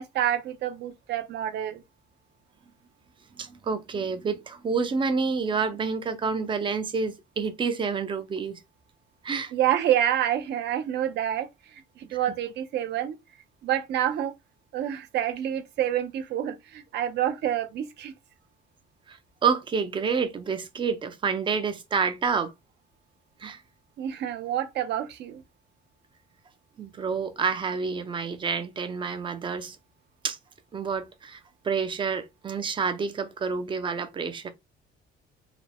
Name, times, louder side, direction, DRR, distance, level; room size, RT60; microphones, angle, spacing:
voice 1, 0.0-1.8 9.5-13.2 13.6-14.3 14.7-18.1 24.0-25.4, right 11 dB, 55° right, 0.8 m, -28 dB
voice 2, 3.4-8.6 9.2-9.5 19.1-22.5 23.4-23.6 26.8-29.8 30.2-30.4 30.7-31.4 31.6-34.5, right 5 dB, 25° right, 0.6 m, -28 dB
4.8 x 2.2 x 3.4 m
cardioid pair, 175°, 20 cm